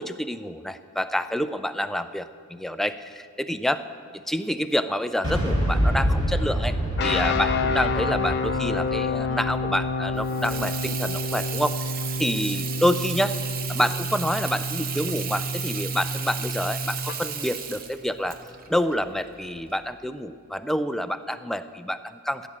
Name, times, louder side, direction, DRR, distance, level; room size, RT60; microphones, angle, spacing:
voice 1, 0.0-3.8 4.3-6.8 7.0-11.8 12.2-13.4 13.7-18.4 18.7-22.5, equal, ahead, 10 dB, 0.3 m, -28 dB
Boom, 5.2-11.1, equal, 25° right, 2.9 m, -27 dB
sound 1, 7.0-17.2, left 3 dB, 50° left, 0.7 m, -29 dB
Water tap faucet / Sink (filling or washing), 10.2-19.8, right 7 dB, 45° right, 0.8 m, -35 dB
15.5 x 6.0 x 8.7 m, 2.3 s
head